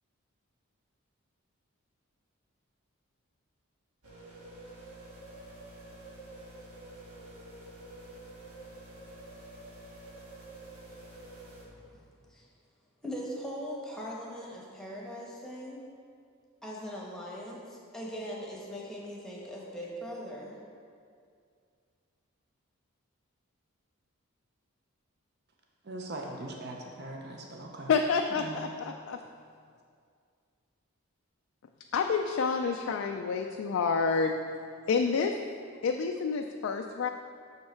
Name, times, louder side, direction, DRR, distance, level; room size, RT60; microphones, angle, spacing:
sound 1, 4.0-11.6, right 1 dB, 85° right, 1.6 m, -48 dB
voice 1, 11.7-12.5 13.0-15.8 16.6-20.6, equal, ahead, -4 dB, 1.0 m, -40 dB
voice 2, 25.8-27.9 28.3-28.6, right 2 dB, 50° right, 0 dB, 0.6 m, -40 dB
voice 3, 27.9-29.2 31.9-34.3 34.9-35.3 35.8-37.1, left 5 dB, 65° left, 4 dB, 0.3 m, -28 dB
6.5 x 5.4 x 4.4 m, 2.2 s
head